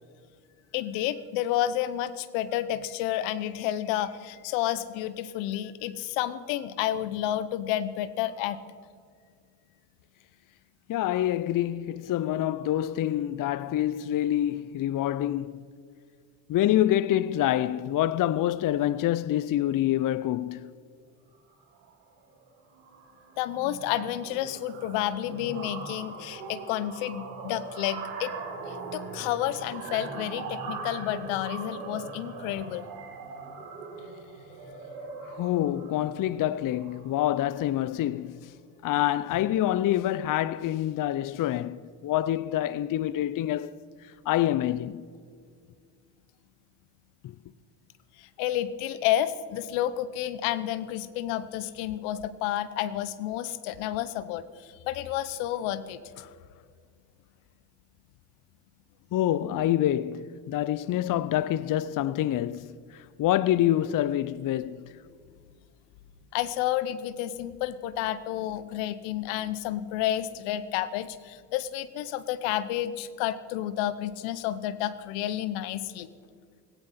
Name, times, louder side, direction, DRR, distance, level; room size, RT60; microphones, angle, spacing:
voice 1, 0.7-8.6 23.4-28.3 28.7-32.9 48.2-56.0 66.3-76.1, left 12 dB, 80° left, 0.8 m, -30 dB
voice 2, 10.9-15.6 16.5-20.7 35.2-38.5 38.8-43.8 44.3-45.1 56.2-56.3 59.1-64.9, left 12 dB, 45° left, 0.6 m, -26 dB
sound 1, 21.6-21.9 22.2-22.5 22.7-37.6, right 4 dB, 90° right, 1.8 m, -41 dB
17.5 x 16.0 x 4.2 m
hypercardioid pair, 55°, 46 cm